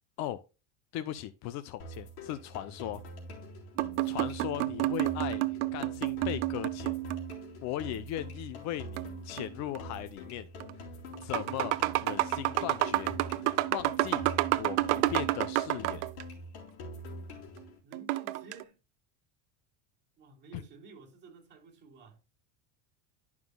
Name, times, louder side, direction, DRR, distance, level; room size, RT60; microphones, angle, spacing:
voice 1, 0.9-3.0 4.0-5.4 5.7-6.9 7.6-10.5 11.2-13.2 13.5-14.3 14.6-16.0 20.5-20.6, left 12 dB, 50° left, 0.7 m, -38 dB
sound 1, 1.8-17.8, equal, 70° left, 3.7 m, -45 dB
sound 2, 3.8-7.5 9.0-9.8 10.6-10.7 11.1-16.2 17.9-18.6, right 18 dB, 75° right, 0.7 m, -30 dB
voice 2, 4.0-4.5 11.2-11.3 17.8-18.8 20.2-22.2, right 4 dB, 30° right, 3.3 m, -53 dB
11.5 x 6.0 x 2.2 m
supercardioid pair, 140°, 35 cm